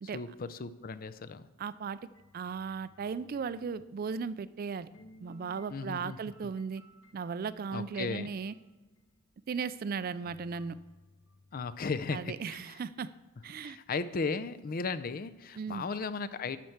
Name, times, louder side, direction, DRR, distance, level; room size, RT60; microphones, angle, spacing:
voice 1, 0.1-1.5 5.7-6.2 6.4-6.5 7.7-8.3 11.5-12.6 13.6-16.6, left 4 dB, 45° left, 13 dB, 0.5 m, -36 dB
voice 2, 1.6-2.0 2.3-4.9 5.2-6.8 7.1-8.5 9.5-10.8 12.1-13.1 13.4-13.8 15.6-15.8, right 5 dB, 45° right, 15 dB, 0.3 m, -36 dB
sound 1, 2.1-4.3 4.9-9.3 10.1-11.8, left 1 dB, 85° left, 1.4 m, -60 dB
12.0 x 4.5 x 6.6 m, 1.2 s
head